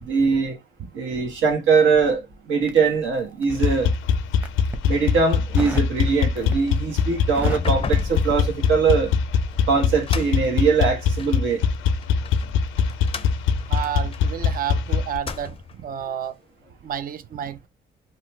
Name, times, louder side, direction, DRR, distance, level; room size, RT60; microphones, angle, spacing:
voice 1, 0.0-0.6 0.9-3.9 4.9-9.1 9.7-11.6, right 5 dB, 80° right, 1.3 m, -21 dB
Crackle, 2.6-3.8 4.3-4.9 5.6-6.0 6.3-6.8 7.1-9.0 9.3-9.5, equal, 10° right, 0.8 m, -34 dB
sound 1, 3.5-15.2, left 6 dB, 85° left, 0.5 m, -22 dB
sound 2, 7.4-11.4 12.0-14.7 15.1-15.9, left 5 dB, 30° left, 0.5 m, -36 dB
voice 2, 13.6-16.4 16.8-17.7, right 9 dB, 45° right, 0.5 m, -31 dB
2.9 x 2.3 x 3.0 m
cardioid pair, 90°, 20 cm